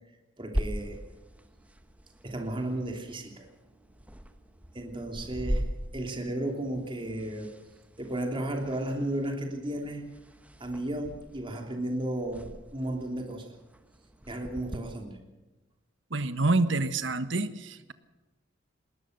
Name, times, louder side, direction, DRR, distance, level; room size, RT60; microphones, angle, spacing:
voice 1, 0.4-1.0 2.2-3.5 4.7-5.6 5.9-7.5 8.0-10.0 10.6-13.5 14.3-15.2, right 1 dB, 25° right, 3 dB, 3.1 m, -34 dB
sound 1, 0.5-14.8, equal, 5° right, 1.2 m, -40 dB
voice 2, 16.1-17.9, right 2 dB, 65° right, 12 dB, 1.3 m, -27 dB
20.0 x 19.5 x 6.7 m, 1.1 s
head